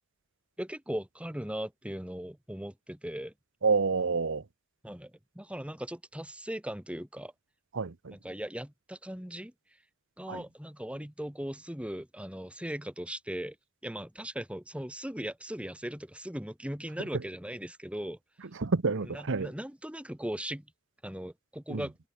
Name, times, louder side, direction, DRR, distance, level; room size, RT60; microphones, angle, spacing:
voice 1, 0.6-3.3 4.8-7.3 8.1-9.5 10.2-13.6 13.8-18.2 19.1-20.7 21.0-21.9, equal, 5° right, 1.9 m, -38 dB
voice 2, 3.6-4.4 7.7-8.1 10.3-10.4 17.1-17.2 18.5-19.5 21.7-21.9, right 4 dB, 60° right, 0.8 m, -28 dB
head